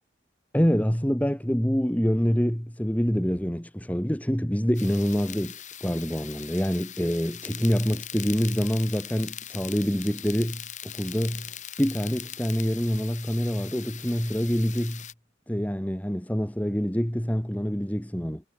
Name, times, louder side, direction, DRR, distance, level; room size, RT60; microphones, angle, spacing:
voice 1, 0.5-11.5 11.8-15.0 15.5-18.4, equal, 10° left, 1.7 m, -26 dB
sound 1, 4.7-15.1, left 10 dB, 40° left, 5.0 m, -41 dB
head